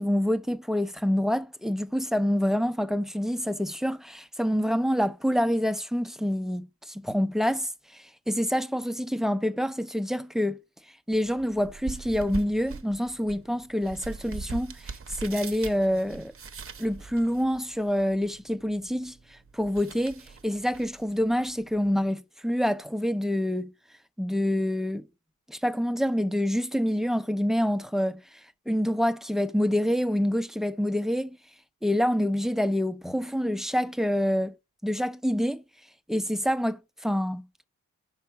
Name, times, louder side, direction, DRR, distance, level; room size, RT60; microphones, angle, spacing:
voice 1, 0.0-10.6 11.1-16.3 16.8-23.7 24.2-25.1 25.5-28.4 28.7-31.4 31.8-34.5 34.8-35.6 36.1-37.6, equal, ahead, 0.6 m, -27 dB
sound 1, 11.1-22.1, right 5 dB, 45° right, 0.8 m, -43 dB
5.2 x 4.7 x 5.6 m
cardioid pair, 85°, 32 cm